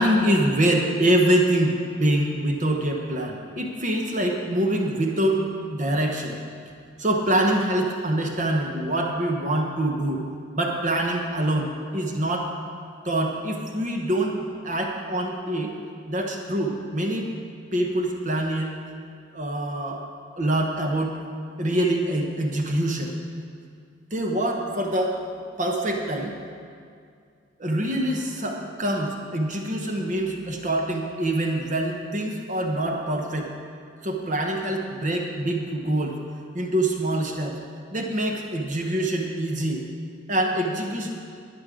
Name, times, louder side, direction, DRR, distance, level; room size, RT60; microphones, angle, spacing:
voice 1, 0.0-5.4 5.7-6.4 7.0-10.2 10.5-12.5 13.0-14.4 14.6-15.7 16.1-17.3 17.7-18.7 19.3-20.0 20.4-21.2 21.6-23.1 24.1-25.2 25.6-26.3 27.6-33.5 34.0-36.2 36.5-37.6 37.9-39.8 40.3-41.1, right 1 dB, 40° right, 1 dB, 0.9 m, -25 dB
11.5 x 9.5 x 4.9 m, 2.3 s
head